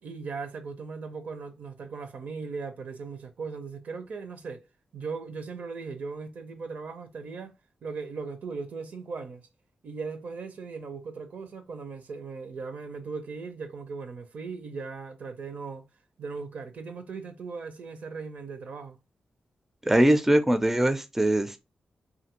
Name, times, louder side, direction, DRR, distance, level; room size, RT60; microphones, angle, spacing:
voice 1, 0.0-4.6 4.9-7.5 7.8-9.5 9.8-15.8 16.2-19.0, right 4 dB, 70° right, 0.6 m, -38 dB
voice 2, 19.8-21.6, right 1 dB, 10° right, 0.4 m, -22 dB
2.7 x 2.5 x 2.9 m
cardioid pair, 80°, 3 cm